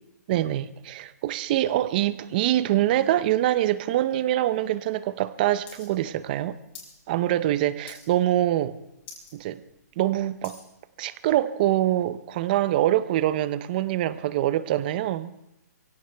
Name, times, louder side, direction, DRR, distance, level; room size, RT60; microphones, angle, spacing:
voice 1, 0.3-6.6 7.1-8.8 9.3-9.6 10.0-10.6 11.0-15.3, right 13 dB, 30° right, 0.6 m, -24 dB
sound 1, 5.7-5.9 6.1-7.0 7.3-7.6 7.9-8.3 8.7-8.8 9.0-9.3 9.8-10.7 11.4-11.5, left 5 dB, 35° left, 5.8 m, -45 dB
23.5 x 16.5 x 3.4 m
hypercardioid pair, 160°, 9 cm